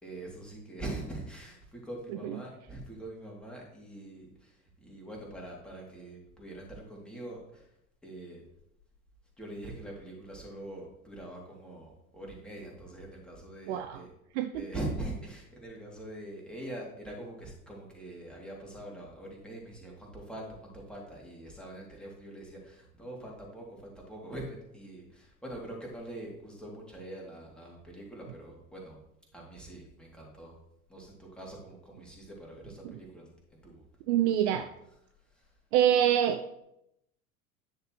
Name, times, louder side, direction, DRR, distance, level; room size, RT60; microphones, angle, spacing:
voice 1, 0.0-7.7 8.0-8.4 9.4-14.1 14.5-29.0 29.3-30.5 30.9-33.8 34.2-35.5, right 1 dB, ahead, -3 dB, 2.8 m, -43 dB
voice 2, 13.7-14.0 14.3-14.5 34.1-34.7 35.7-36.6, right 10 dB, 50° right, 9 dB, 0.6 m, -25 dB
9.9 x 6.6 x 3.1 m, 0.80 s
figure-of-eight pair, 80°, 44 cm